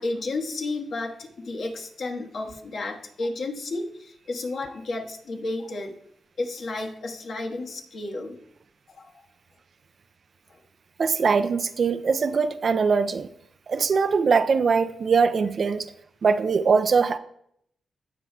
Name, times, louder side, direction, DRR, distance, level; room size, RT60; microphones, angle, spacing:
voice 1, 0.0-6.0 6.4-8.4 8.9-9.1 10.5-10.6, left 2 dB, 65° left, 1 dB, 1.4 m, -32 dB
voice 2, 11.0-13.3 13.7-15.9 16.2-17.2, right 5 dB, 55° right, 10 dB, 0.4 m, -22 dB
16.5 x 5.9 x 2.3 m, 0.73 s
cardioid pair, 60°, 0 cm